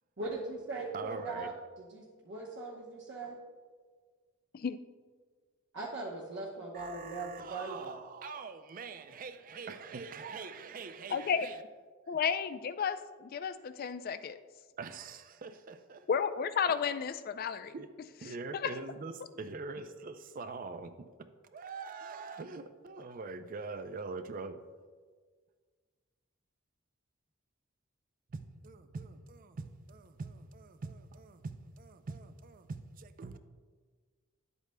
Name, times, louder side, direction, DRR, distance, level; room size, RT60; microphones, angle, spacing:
voice 1, 0.2-1.5 1.8-3.3 5.7-8.0, right 3 dB, 55° right, -4 dB, 0.9 m, -40 dB
voice 2, 0.9-1.5 6.7-11.6 14.8-16.1 17.7-17.9 18.2-20.9 21.5-24.6 28.3-33.4, right 4 dB, 40° right, 10 dB, 0.4 m, -43 dB
voice 3, 11.1-11.5 12.1-14.4 16.1-17.7 18.5-18.7, left 6 dB, 45° left, 12 dB, 0.3 m, -32 dB
10.5 x 8.0 x 2.2 m, 1.5 s
head